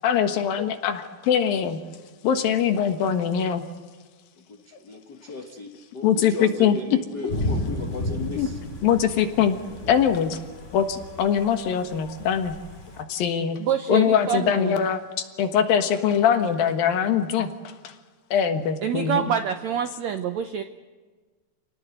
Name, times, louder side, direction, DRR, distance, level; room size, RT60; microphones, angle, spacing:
voice 1, 0.0-1.8 2.2-3.7 6.0-7.3 8.3-8.5 8.8-9.6 9.9-10.4 10.7-12.5 13.0-13.6 13.9-15.0 15.4-17.5 17.8-17.9 18.3-19.3, left 8 dB, 70° left, 7 dB, 3.2 m, -22 dB
voice 2, 4.8-5.7 5.9-8.5 14.5-14.6, left 3 dB, 55° left, 4 dB, 1.1 m, -36 dB
Thunder / Rain, 7.3-13.0, left 1 dB, 20° left, 2.7 m, -33 dB
voice 3, 13.6-14.9 18.8-20.6, right 8 dB, 80° right, 8 dB, 1.6 m, -26 dB
28.0 x 18.5 x 7.9 m, 1.4 s
omnidirectional pair, 4.3 m